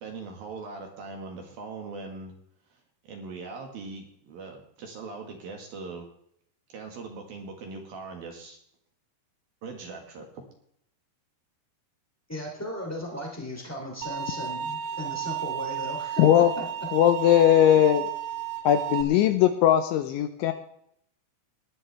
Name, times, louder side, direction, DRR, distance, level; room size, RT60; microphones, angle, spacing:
voice 1, 0.0-2.3 2.7-6.1 6.7-8.6 9.6-10.4, right 4 dB, 60° right, 2 dB, 2.7 m, -40 dB
voice 2, 12.3-16.3 16.6-16.7, left 1 dB, 25° left, 0 dB, 0.3 m, -36 dB
sound 1, 14.0-19.0, right 11 dB, 85° right, 3.7 m, -33 dB
voice 3, 16.2-16.5 16.9-18.1 18.6-20.5, left 11 dB, 80° left, 8 dB, 2.8 m, -19 dB
19.5 x 11.5 x 3.4 m, 0.70 s
omnidirectional pair, 6.0 m